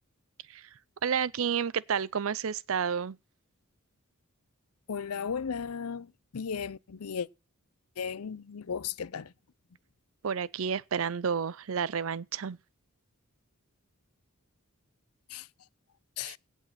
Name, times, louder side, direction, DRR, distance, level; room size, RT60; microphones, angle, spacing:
voice 1, 1.0-3.2 10.2-12.6 16.2-16.3, right 7 dB, 65° right, 0.5 m, -30 dB
voice 2, 4.9-6.1 6.3-7.3 8.0-9.3 15.3-15.4 16.2-16.4, left 6 dB, 85° left, 0.6 m, -35 dB
17.0 x 6.3 x 5.7 m
head